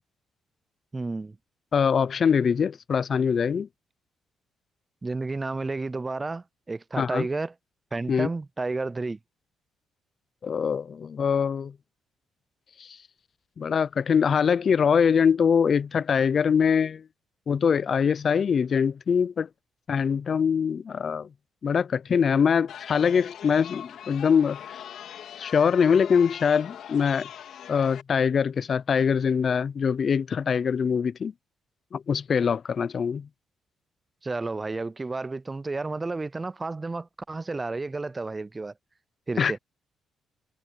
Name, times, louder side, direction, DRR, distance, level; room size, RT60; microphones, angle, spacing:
voice 1, 0.9-1.4 5.0-7.5 7.9-9.2 34.2-38.7 39.3-39.6, right 3 dB, 20° right, 0.4 m, -31 dB
voice 2, 1.7-3.7 7.0-7.3 8.1-8.3 10.4-11.7 12.8-12.9 13.6-17.0 17.5-19.5 19.9-21.3 21.6-24.8 25.4-27.3 27.7-31.3 31.9-33.3 39.4-39.6, left 6 dB, 50° left, 0.5 m, -23 dB
Chatter, 22.7-28.0, left 9 dB, 70° left, 3.7 m, -41 dB
cardioid pair, 90°, 0 cm